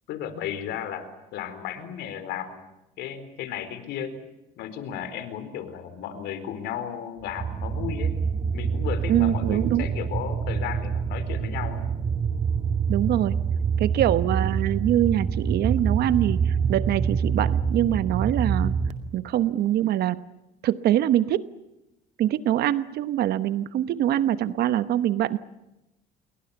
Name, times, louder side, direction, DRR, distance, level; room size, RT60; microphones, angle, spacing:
voice 1, 0.1-2.7 3.0-4.2 4.6-8.2 8.5-11.9, left 9 dB, 85° left, 11 dB, 4.3 m, -34 dB
sound 1, 7.3-18.9, right 6 dB, 40° right, 2.4 m, -26 dB
voice 2, 9.1-9.9 12.9-13.4 13.8-18.7 19.1-20.2 20.6-21.4 22.2-25.4, right 12 dB, 70° right, 14 dB, 1.0 m, -24 dB
28.5 x 23.0 x 7.1 m, 0.95 s
cardioid pair, 110°, 17 cm